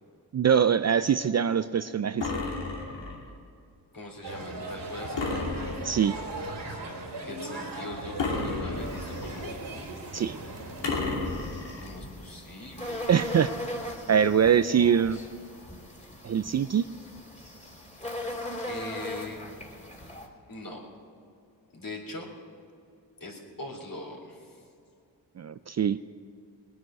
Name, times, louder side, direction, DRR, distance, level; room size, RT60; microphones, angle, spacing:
voice 1, 0.3-2.3 5.8-6.2 10.1-10.3 13.1-13.5 14.1-15.2 16.2-16.9 25.4-26.0, right 8 dB, 40° right, 13 dB, 0.4 m, -23 dB
sound 1, 2.2-3.3 5.2-6.2 8.2-9.3 10.8-11.9, left 3 dB, 85° left, 2.7 m, -32 dB
voice 2, 3.9-5.3 7.2-9.5 11.8-13.1 14.0-14.1 18.6-19.4 20.5-20.8 21.7-22.3 23.2-24.6, left 2 dB, 50° left, 1 dB, 3.6 m, -41 dB
sound 2, 4.2-10.9, right 2 dB, 75° right, 3.1 m, -38 dB
sound 3, 8.8-20.3, left 1 dB, 15° left, 2.7 m, -40 dB
20.0 x 9.4 x 6.4 m, 2.5 s
cardioid pair, 60°, 42 cm